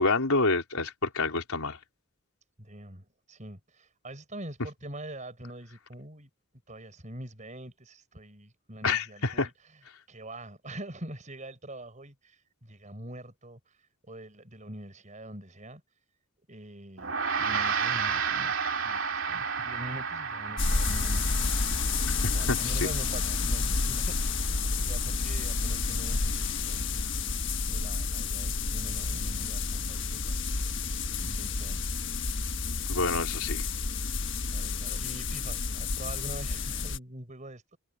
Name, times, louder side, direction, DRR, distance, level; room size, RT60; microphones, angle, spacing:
voice 1, 0.0-1.8 8.8-9.5 22.1-22.2 22.5-22.8 32.9-33.6, left 3 dB, 80° left, 4.0 m, -28 dB
voice 2, 2.6-6.3 6.7-9.5 10.1-15.8 16.5-18.6 18.8-21.5 22.2-26.8 27.7-30.3 31.2-31.8 32.8-33.0 34.4-37.8, right 1 dB, 35° right, 5.7 m, -44 dB
Gong, 17.0-26.6, right 6 dB, 60° right, 2.9 m, -33 dB
sound 1, 20.6-37.0, left 4 dB, 55° left, 1.4 m, -30 dB
head